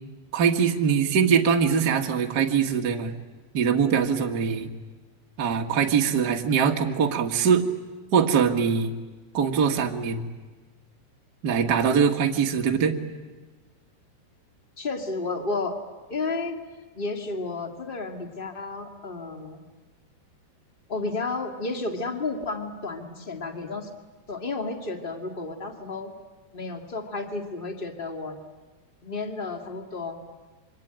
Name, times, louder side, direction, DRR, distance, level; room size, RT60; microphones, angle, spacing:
voice 1, 0.3-3.1 3.5-4.7 5.4-7.7 8.1-8.9 9.3-10.3 11.4-13.0, right 6 dB, 80° right, 2 dB, 0.9 m, -22 dB
voice 2, 14.8-15.8 16.1-16.6 16.9-19.6 20.9-23.9 24.3-26.1 26.5-28.4 29.0-30.2, left 3 dB, 30° left, 3 dB, 1.0 m, -32 dB
27.0 x 24.5 x 9.0 m, 1.3 s
omnidirectional pair, 4.9 m